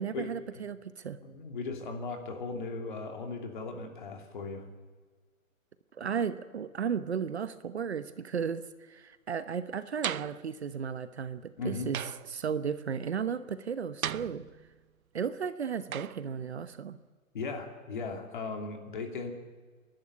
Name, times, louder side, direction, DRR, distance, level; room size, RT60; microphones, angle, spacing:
voice 1, 0.0-1.2 5.9-14.4 15.1-17.0, right 7 dB, 50° right, 13 dB, 1.0 m, -34 dB
voice 2, 1.2-4.6 6.0-6.1 11.6-11.9 17.3-19.3, left 4 dB, 35° left, 4 dB, 2.8 m, -37 dB
sound 1, 10.0-10.5 11.9-12.4 14.0-14.8 15.9-16.3, right 10 dB, 85° right, 0.7 m, -37 dB
29.5 x 11.5 x 8.2 m, 1.4 s
hypercardioid pair, 170°, 42 cm